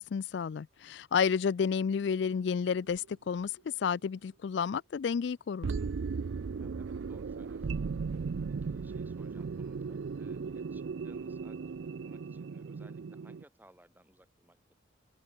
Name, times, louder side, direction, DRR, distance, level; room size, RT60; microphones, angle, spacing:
voice 1, 0.0-5.7, left 6 dB, 60° left, 0.4 m, -31 dB
voice 2, 1.2-1.5 6.5-7.9 8.1-14.7, right 1 dB, 10° right, 6.8 m, -62 dB
sound 1, 1.9-2.5 3.0-3.1 5.6-13.4, right 5 dB, 75° right, 0.4 m, -37 dB
open air
head